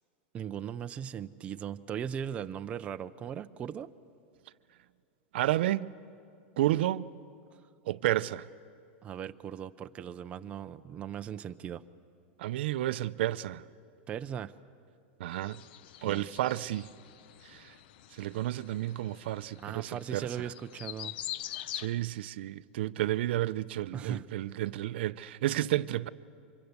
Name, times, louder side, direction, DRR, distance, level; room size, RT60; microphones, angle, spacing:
voice 1, 0.3-3.9 7.5-7.6 9.0-11.8 14.1-14.5 16.0-16.3 19.6-21.1 23.9-24.3, right 8 dB, 20° right, 0.5 m, -38 dB
voice 2, 5.3-5.9 6.6-7.1 7.9-8.5 12.4-13.6 15.2-15.6 16.0-16.9 17.5-17.7 18.2-20.3 21.7-26.1, right 14 dB, 65° right, 0.5 m, -31 dB
sound 1, 15.3-21.9, left 12 dB, 60° left, 0.7 m, -44 dB
25.0 x 22.5 x 8.1 m
supercardioid pair, 155°, 6 cm